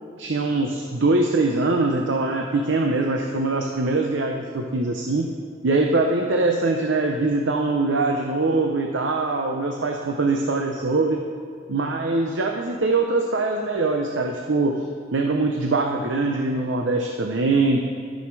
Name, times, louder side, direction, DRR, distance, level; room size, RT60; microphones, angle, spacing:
voice 1, 0.2-5.3 5.6-11.2 11.7-14.8 15.1-17.8, right 3 dB, 90° right, 3 dB, 0.7 m, -22 dB
13.0 x 6.4 x 4.7 m, 2.3 s
head